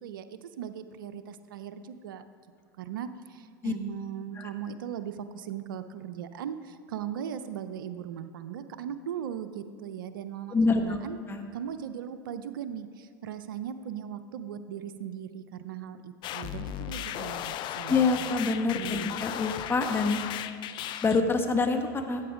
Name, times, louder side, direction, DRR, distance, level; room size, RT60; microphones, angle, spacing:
voice 1, 0.0-2.3 2.8-11.2 11.5-18.3 18.7-19.1, right 9 dB, 80° right, 11 dB, 0.6 m, -38 dB
voice 2, 10.5-11.0 11.3-11.4 17.9-20.2 21.0-22.2, left 3 dB, 20° left, 5 dB, 1.2 m, -26 dB
sound 1, 16.2-21.2, left 11 dB, 45° left, 0.6 m, -36 dB
13.0 x 8.6 x 5.0 m, 2.2 s
hypercardioid pair, 95°, 11 cm